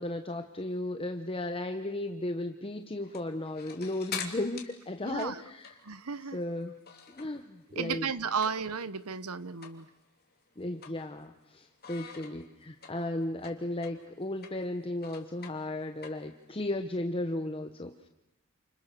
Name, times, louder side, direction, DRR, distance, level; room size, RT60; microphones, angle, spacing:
voice 1, 0.0-5.7 6.3-6.7 7.1-8.1 10.6-18.1, left 1 dB, 25° left, 7 dB, 1.1 m, -35 dB
sound 1, 3.0-7.5 7.8-8.9 9.2-9.3 9.6-9.8 10.2-11.4 11.8-16.6, left 7 dB, 45° left, 3.3 m, -45 dB
voice 2, 5.0-5.4 5.8-6.4 7.7-9.9, right 5 dB, 90° right, 16 dB, 1.1 m, -34 dB
29.5 x 27.5 x 6.9 m, 0.92 s
head